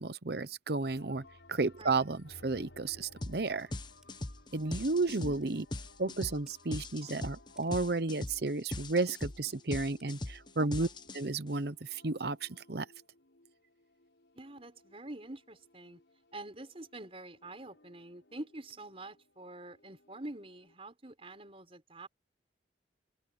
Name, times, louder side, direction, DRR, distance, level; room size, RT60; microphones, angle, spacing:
voice 1, 0.0-3.7 4.5-5.6 6.0-10.9 11.1-12.9, right 3 dB, 60° right, 0.9 m, -33 dB
sound 1, 0.9-20.7, left 2 dB, 85° left, 5.4 m, -61 dB
sound 2, 3.2-3.4 3.7-11.5, left 1 dB, 25° left, 1.0 m, -40 dB
sound 3, 4.0-4.2 4.7-4.8 5.3-5.5 6.5-6.6 7.6-7.7 8.8-8.9 10.0-10.2, right 1 dB, 5° right, 5.9 m, -64 dB
voice 2, 5.0-5.5 10.6-11.1 14.3-16.0 16.3-22.1, right 2 dB, 30° right, 4.8 m, -46 dB
open air
head